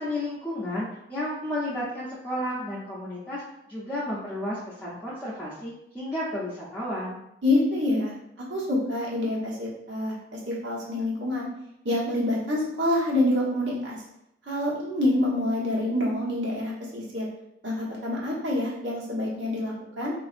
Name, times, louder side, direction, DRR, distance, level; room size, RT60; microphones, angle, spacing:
voice 1, 0.0-3.4 3.7-7.2, left 1 dB, 10° left, -10 dB, 0.6 m, -32 dB
voice 2, 7.4-11.5 11.8-14.0 14.5-17.3 17.6-20.1, left 1 dB, 85° right, -5 dB, 1.1 m, -27 dB
4.0 x 2.5 x 2.5 m, 0.81 s
head